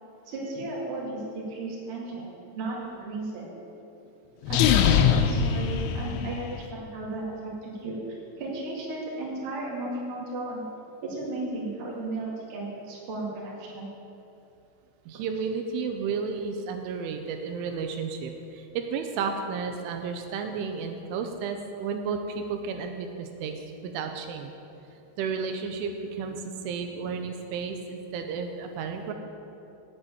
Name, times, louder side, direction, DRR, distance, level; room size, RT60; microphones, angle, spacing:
voice 1, 0.3-2.3 2.5-3.5 4.5-8.0 8.4-10.6 11.0-13.9, right 2 dB, 40° right, -5 dB, 2.3 m, -34 dB
sound 1, 4.4-6.6, left 8 dB, 90° left, 3.1 m, -22 dB
voice 2, 15.1-23.5 23.8-24.5 25.2-29.1, right 5 dB, 85° right, 5 dB, 3.1 m, -32 dB
8.7 x 7.8 x 8.9 m, 2.8 s
omnidirectional pair, 5.6 m